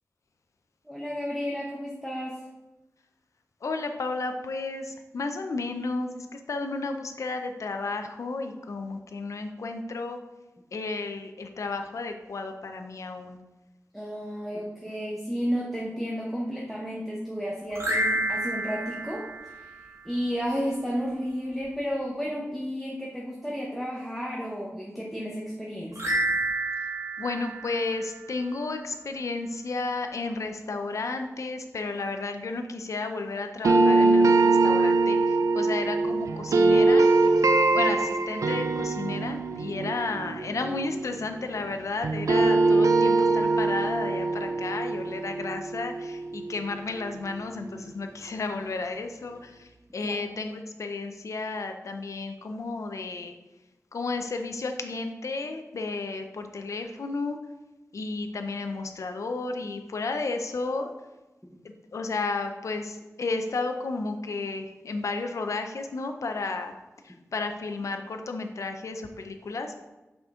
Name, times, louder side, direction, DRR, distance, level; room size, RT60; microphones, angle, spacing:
voice 1, 0.8-2.4 13.9-19.7 20.0-26.1 50.0-50.2, equal, ahead, -3 dB, 0.9 m, -32 dB
voice 2, 3.6-10.2 10.7-13.4 26.8-26.9 27.2-37.1 37.7-53.3 53.9-57.4 57.9-60.9 61.9-66.7 67.0-69.9, left 3 dB, 75° left, 5 dB, 0.5 m, -33 dB
sound 1, 17.7-20.2 25.9-28.6, right 2 dB, 70° right, 1.4 m, -30 dB
sound 2, 33.6-41.7 42.0-47.0, right 3 dB, 85° right, 0.4 m, -23 dB
5.9 x 5.1 x 3.7 m, 1.1 s
wide cardioid pair, 95°, 5 cm